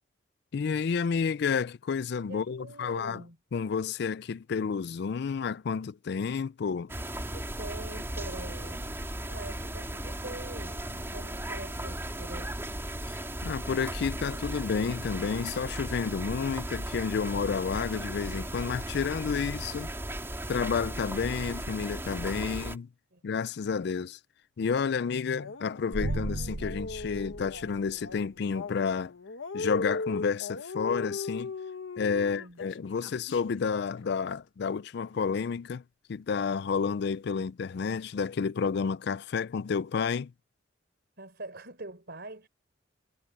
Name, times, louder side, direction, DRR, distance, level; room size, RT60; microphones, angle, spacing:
voice 1, 0.5-3.2 3.5-6.9 13.1-13.2 13.4-19.9 20.5-22.9 23.2-24.2 24.6-29.1 29.5-31.5 32.0-35.8 36.1-40.3, left 6 dB, 55° left, 0.4 m, -30 dB
voice 2, 2.3-3.4 7.2-12.6 19.4-20.1 20.4-20.5 23.1-23.2 32.2-32.6 41.2-42.5, right 2 dB, 55° right, 4.5 m, -45 dB
sound 1, 6.9-22.8, right 1 dB, 15° right, 3.0 m, -36 dB
sound 2, 24.7-33.6 34.0-34.1, left 3 dB, 85° left, 1.2 m, -38 dB
sound 3, 25.9-28.2, right 2 dB, 80° right, 1.2 m, -35 dB
head